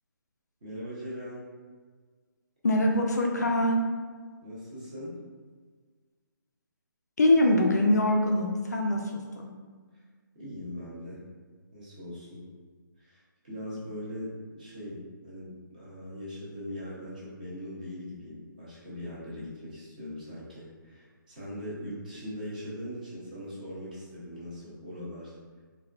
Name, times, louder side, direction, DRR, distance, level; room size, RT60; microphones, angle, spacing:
voice 1, 0.6-1.4 4.4-5.2 10.3-11.2 11.7-12.4 13.0-25.3, equal, 20° right, -8 dB, 0.6 m, -40 dB
voice 2, 2.6-3.8 7.2-9.5, left 1 dB, 50° left, 1 dB, 0.4 m, -24 dB
3.5 x 2.2 x 2.3 m, 1.5 s
hypercardioid pair, 175°, 11 cm